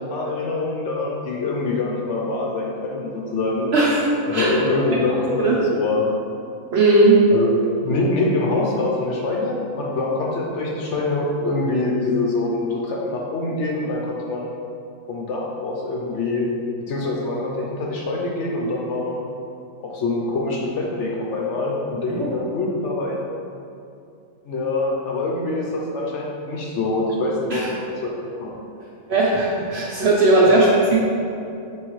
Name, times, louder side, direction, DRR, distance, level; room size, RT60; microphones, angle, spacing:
voice 1, 0.0-3.7 4.3-6.1 7.3-7.5 7.8-14.5 15.1-16.5 16.9-19.3 19.8-23.2 24.4-28.1 28.4-28.5, left 2 dB, 65° left, -3 dB, 0.8 m, -24 dB
voice 2, 3.7-4.5 5.2-5.6 6.7-7.2 22.2-22.3 27.5-27.6 29.1-31.0, right 2 dB, 65° right, -4 dB, 0.7 m, -17 dB
5.3 x 3.1 x 3.1 m, 2.6 s
omnidirectional pair, 1.5 m